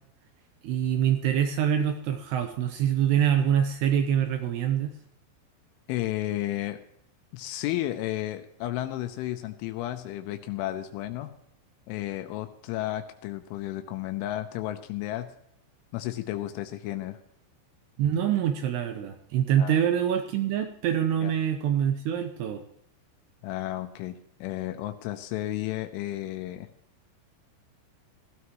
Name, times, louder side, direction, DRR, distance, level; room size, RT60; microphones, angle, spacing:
voice 1, 0.6-4.9 18.0-22.6, right 9 dB, 80° right, 7 dB, 2.5 m, -25 dB
voice 2, 5.9-6.8 7.3-11.3 11.9-15.3 15.9-17.2 19.6-19.7 21.2-21.3 23.4-26.7, left 14 dB, 85° left, 7 dB, 3.2 m, -33 dB
16.0 x 12.5 x 3.0 m, 0.72 s
omnidirectional pair, 5.5 m